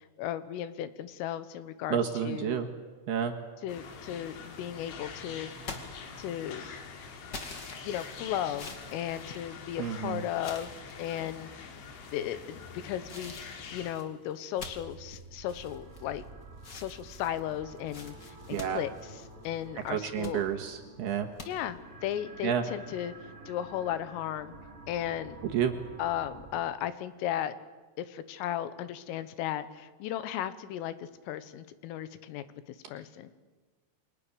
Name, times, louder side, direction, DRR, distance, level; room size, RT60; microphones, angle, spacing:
voice 1, 0.0-2.0 2.2-2.7 3.6-5.7 6.2-6.7 7.8-11.5 12.1-13.4 13.7-16.2 16.7-18.9 19.5-20.4 21.5-23.1 23.5-24.6 24.9-25.4 26.0-27.5 28.0-33.3, left 11 dB, 85° left, 13 dB, 3.8 m, -35 dB
voice 2, 1.9-2.7 3.1-3.3 9.8-10.2 18.5-18.8 19.9-21.3 22.4-22.6 25.4-25.7, right 8 dB, 65° right, 4 dB, 3.0 m, -30 dB
sound 1, 3.7-13.9, left 5 dB, 65° left, 4.7 m, -45 dB
sound 2, 5.6-6.6 7.3-9.9 10.4-11.4 12.0-12.5 13.1-16.2 16.6-19.6 20.0-20.4 21.4-21.5, left 3 dB, 40° left, 1.6 m, -46 dB
sound 3, 14.6-26.6, right 2 dB, 20° right, 3.4 m, -50 dB
29.0 x 24.5 x 7.0 m, 1.3 s
omnidirectional pair, 5.7 m